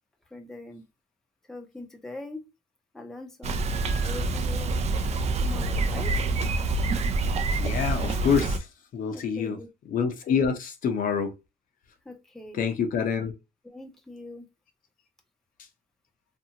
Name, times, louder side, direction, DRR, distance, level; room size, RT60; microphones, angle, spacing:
voice 1, 0.3-0.8 1.5-2.4 2.9-3.6 4.0-4.8 5.4-6.2 9.1-9.7 12.1-12.6 13.6-14.5, left 2 dB, ahead, 0.6 m, -41 dB
Bicycle, 3.4-8.6, right 3 dB, 40° right, 0.4 m, -26 dB
voice 2, 7.5-8.7 8.9-9.6 9.9-11.3 12.5-13.3, left 6 dB, 55° left, 0.7 m, -26 dB
2.6 x 2.3 x 2.8 m
cardioid pair, 110°, 17 cm